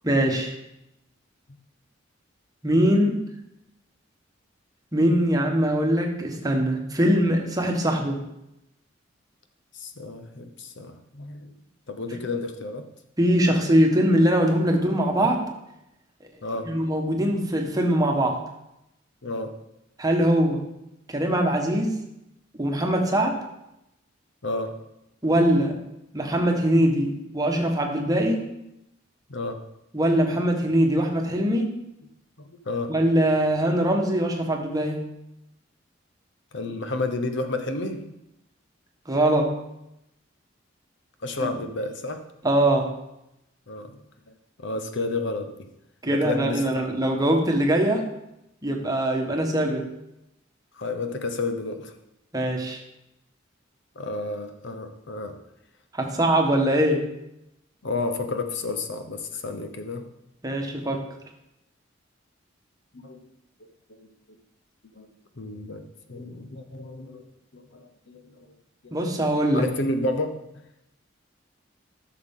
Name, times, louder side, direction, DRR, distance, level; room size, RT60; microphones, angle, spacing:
voice 1, 0.0-0.6 2.6-3.2 4.9-8.2 13.2-15.4 16.7-18.4 20.0-20.6 21.1-22.0 22.5-23.4 25.2-25.7 26.1-28.4 29.9-31.7 32.9-35.0 39.1-39.5 41.4-41.5 42.4-42.9 46.0-48.0 48.6-49.9 52.3-52.8 55.9-57.0 60.4-61.0 68.9-69.6, right 1 dB, 20° right, 2 dB, 1.3 m, -22 dB
voice 2, 9.7-11.6 11.9-12.8 16.4-16.9 19.2-19.6 24.4-24.8 29.3-29.6 32.4-32.9 36.5-38.1 41.2-42.2 43.7-44.3 44.6-45.7 46.1-46.9 50.7-51.9 53.9-55.4 57.8-60.1 62.9-63.2 63.6-63.7 64.0-64.1 64.9-65.1 65.4-67.2 67.5-68.5 68.8-69.0 69.5-70.4, left 2 dB, 65° left, 7 dB, 0.9 m, -31 dB
11.5 x 6.7 x 3.7 m, 0.87 s
head